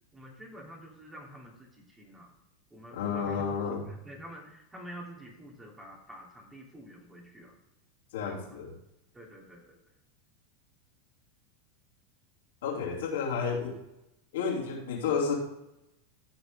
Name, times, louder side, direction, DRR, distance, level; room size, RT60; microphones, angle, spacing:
voice 1, 0.1-2.3 2.7-7.6 8.2-8.6 9.1-9.8, equal, 15° right, -2 dB, 3.1 m, -48 dB
voice 2, 2.9-3.8 8.1-8.7 12.6-13.8 14.3-15.4, left 6 dB, 70° left, -3 dB, 2.7 m, -31 dB
14.5 x 6.8 x 3.6 m, 0.89 s
hypercardioid pair, 90°, 0 cm